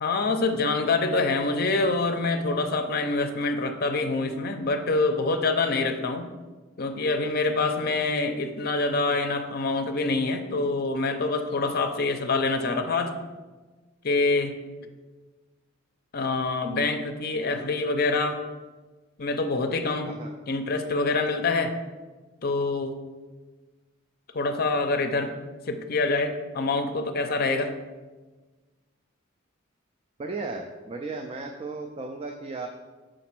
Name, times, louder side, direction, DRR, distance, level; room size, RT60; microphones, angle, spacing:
voice 1, 0.0-6.3 6.8-13.2 14.0-14.6 16.1-18.4 19.2-20.1 20.5-21.7 22.4-23.0 24.3-25.3 25.7-27.8, left 3 dB, 50° left, 7 dB, 0.6 m, -26 dB
voice 2, 20.0-20.3 30.2-32.7, right 3 dB, 30° right, 4 dB, 0.3 m, -35 dB
5.1 x 4.1 x 5.9 m, 1.3 s
head